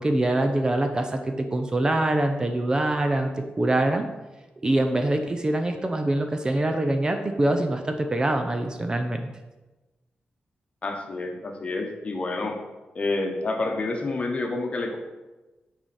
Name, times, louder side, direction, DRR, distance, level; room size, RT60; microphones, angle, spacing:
voice 1, 0.0-4.1 4.6-9.3, right 1 dB, 25° right, 6 dB, 0.5 m, -24 dB
voice 2, 10.8-12.6 12.9-15.0, left 2 dB, 35° left, 3 dB, 1.1 m, -28 dB
9.1 x 4.9 x 4.3 m, 1.1 s
wide cardioid pair, 140°, 3 cm